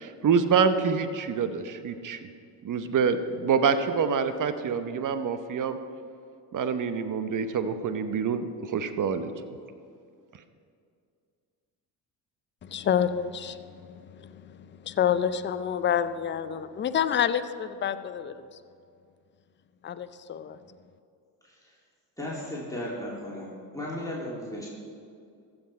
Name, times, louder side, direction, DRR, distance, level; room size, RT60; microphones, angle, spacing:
voice 1, 0.0-2.2 2.6-5.8 6.5-8.4 8.7-9.3, right 6 dB, 40° right, 11 dB, 0.9 m, -26 dB
voice 2, 12.6-18.5 19.8-20.6, left 9 dB, 25° left, 12 dB, 0.5 m, -28 dB
voice 3, 22.2-24.7, left 1 dB, 5° left, -6 dB, 2.9 m, -35 dB
15.0 x 6.2 x 4.3 m, 2.3 s
hypercardioid pair, 55°, 49 cm